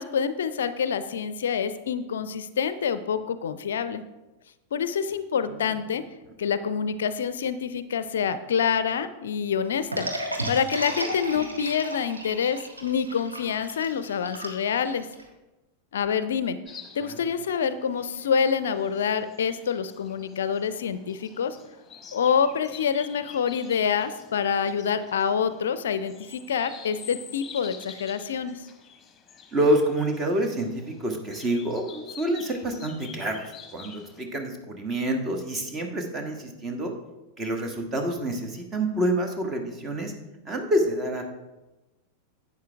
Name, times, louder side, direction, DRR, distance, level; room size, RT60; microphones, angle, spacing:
voice 1, 0.0-4.0 4.7-6.0 6.4-10.1 10.5-15.1 15.9-16.6 17.0-21.6 22.1-28.6, left 7 dB, 65° left, 13 dB, 0.5 m, -27 dB
sound 1, 9.9-15.2, right 1 dB, 80° right, 1.4 m, -34 dB
sound 2, 16.7-34.2, left 6 dB, 20° left, 1.2 m, -48 dB
voice 2, 29.5-36.9 37.4-40.1 40.5-41.2, right 1 dB, 20° right, 4 dB, 1.4 m, -27 dB
11.0 x 8.4 x 3.4 m, 1.1 s
figure-of-eight pair, 90°, 0 cm